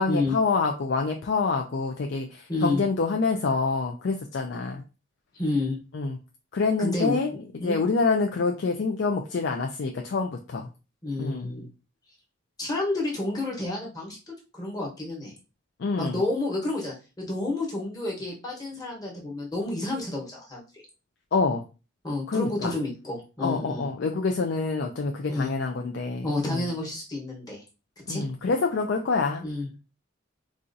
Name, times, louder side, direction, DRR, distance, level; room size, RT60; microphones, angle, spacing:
voice 1, 0.0-4.8 5.9-6.2 6.5-10.7 11.2-11.5 15.8-16.2 21.3-21.6 22.3-22.7 23.4-26.7 28.1-29.5, left 4 dB, 60° left, 3 dB, 0.4 m, -26 dB
voice 2, 2.5-2.8 5.3-5.8 6.8-7.8 11.0-11.7 12.6-15.3 16.0-20.8 22.0-23.9 25.3-25.5 26.2-27.6 28.1-28.2 29.4-29.8, left 2 dB, 20° left, -3 dB, 1.0 m, -30 dB
4.2 x 2.4 x 2.6 m, 0.32 s
head